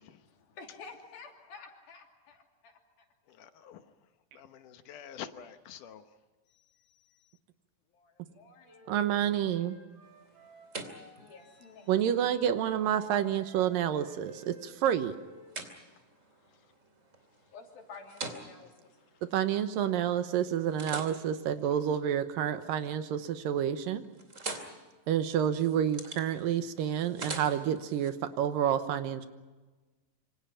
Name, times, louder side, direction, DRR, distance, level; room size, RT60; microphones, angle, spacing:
voice 1, 0.2-3.1 7.9-8.9 11.2-12.3 17.0-17.1 17.5-19.0, left 4 dB, 85° left, 2 dB, 4.8 m, -51 dB
voice 2, 3.3-3.8 4.3-6.0, left 9 dB, 70° left, 9 dB, 2.4 m, -47 dB
Wind instrument woodwind instrument, 8.6-11.8 12.1-15.5, right 3 dB, 40° right, 7.3 m, -56 dB
voice 3, 8.9-9.8 11.9-15.2 19.2-24.0 25.1-29.3, right 9 dB, 75° right, 10 dB, 2.7 m, -29 dB
sound 1, 10.0-20.0 20.5-22.7 23.1-23.5 23.8-28.1, right 3 dB, 25° right, 2.5 m, -46 dB
26.5 x 25.0 x 5.7 m, 1.3 s
omnidirectional pair, 4.1 m